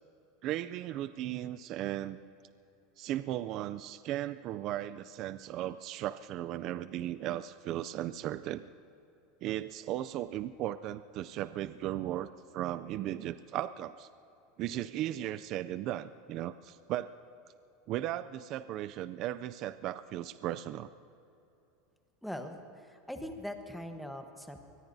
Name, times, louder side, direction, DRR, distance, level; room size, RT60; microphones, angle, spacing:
voice 1, 0.4-2.2 3.0-8.7 9.4-14.1 14.6-17.1 17.9-20.9, right 13 dB, 40° right, 13 dB, 0.3 m, -36 dB
voice 2, 22.2-24.6, left 1 dB, ahead, 5 dB, 1.1 m, -41 dB
23.0 x 20.5 x 2.7 m, 2.8 s
supercardioid pair, 155°, 0 cm